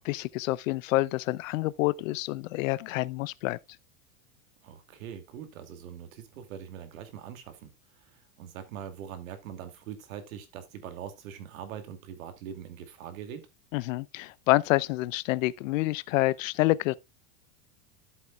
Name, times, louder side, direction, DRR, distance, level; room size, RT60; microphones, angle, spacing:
voice 1, 0.1-3.6 13.7-17.0, left 19 dB, 70° left, 0.6 m, -27 dB
voice 2, 4.6-13.5, right 9 dB, 80° right, 2.5 m, -42 dB
13.0 x 7.5 x 2.3 m
supercardioid pair, 145°, 40 cm